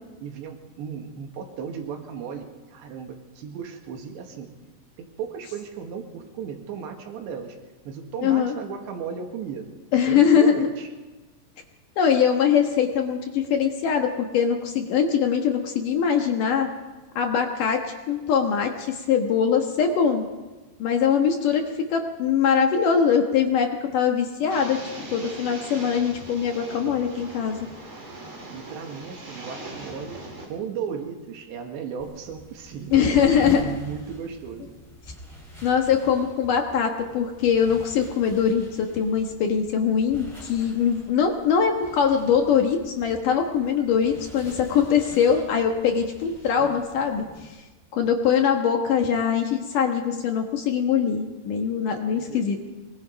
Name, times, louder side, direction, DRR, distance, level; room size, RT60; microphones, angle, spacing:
voice 1, 0.2-4.5 5.0-7.6 7.9-9.7 10.1-10.9 28.5-34.8 52.1-52.5, right 7 dB, 80° right, 4 dB, 4.0 m, -36 dB
voice 2, 8.2-8.5 9.9-10.7 12.0-16.7 17.2-17.8 18.1-20.3 20.8-21.6 21.9-24.8 25.1-27.7 32.9-33.6 35.6-47.2 47.9-52.6, left 7 dB, 65° left, 3 dB, 2.4 m, -22 dB
sound 1, 24.5-30.5, right 2 dB, 30° right, 4.4 m, -40 dB
sound 2, 32.0-47.6, equal, 5° left, 4.8 m, -42 dB
23.5 x 21.0 x 5.2 m, 1.2 s
omnidirectional pair, 5.1 m